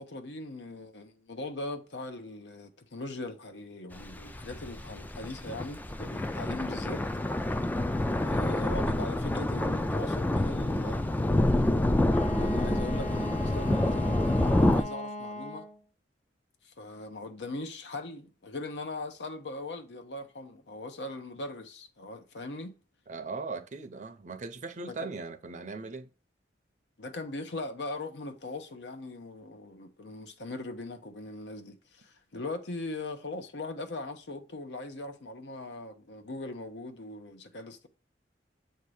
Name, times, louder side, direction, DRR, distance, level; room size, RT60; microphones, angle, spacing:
voice 1, 0.0-7.0 8.2-11.0 12.3-15.7 16.6-22.8 25.0-25.1 27.0-37.9, left 2 dB, 75° left, 0.8 m, -40 dB
sound 1, 3.9-14.8, left 1 dB, 10° left, 0.3 m, -27 dB
Wind instrument woodwind instrument, 12.1-15.8, left 1 dB, 40° left, 1.1 m, -39 dB
voice 2, 23.1-26.1, right 4 dB, 45° right, 0.5 m, -39 dB
7.7 x 2.8 x 4.8 m
head